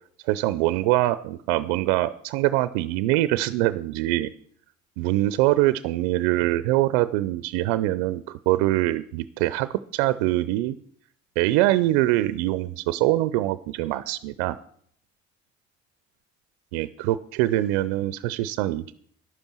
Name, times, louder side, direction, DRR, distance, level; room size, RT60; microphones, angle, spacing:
voice 1, 0.2-4.3 5.0-10.8 11.4-14.6 16.7-18.9, right 16 dB, 85° right, 15 dB, 0.6 m, -23 dB
11.0 x 8.8 x 6.1 m, 0.62 s
hypercardioid pair, 55°, 32 cm